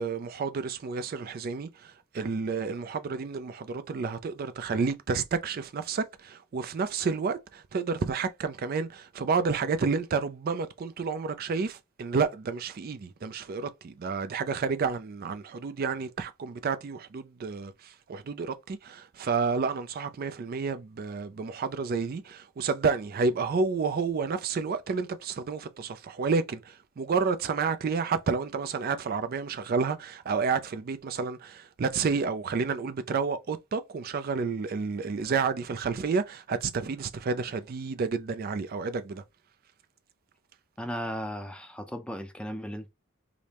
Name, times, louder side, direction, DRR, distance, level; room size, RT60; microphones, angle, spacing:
voice 1, 0.0-39.2, right 5 dB, 45° right, 0.4 m, -30 dB
voice 2, 40.8-42.9, equal, 5° left, 0.5 m, -36 dB
4.9 x 2.1 x 2.8 m
head